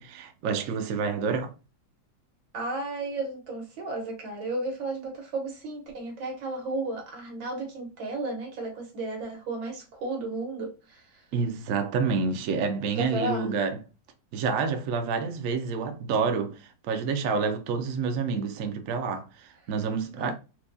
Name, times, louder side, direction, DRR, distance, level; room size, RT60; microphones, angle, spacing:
voice 1, 0.0-1.5 11.3-13.8 14.3-20.3, right 5 dB, 70° right, 0.7 m, -28 dB
voice 2, 2.5-11.2 13.0-13.5 20.2-20.3, right 2 dB, 90° right, 1.9 m, -33 dB
4.5 x 2.2 x 2.6 m
omnidirectional pair, 2.0 m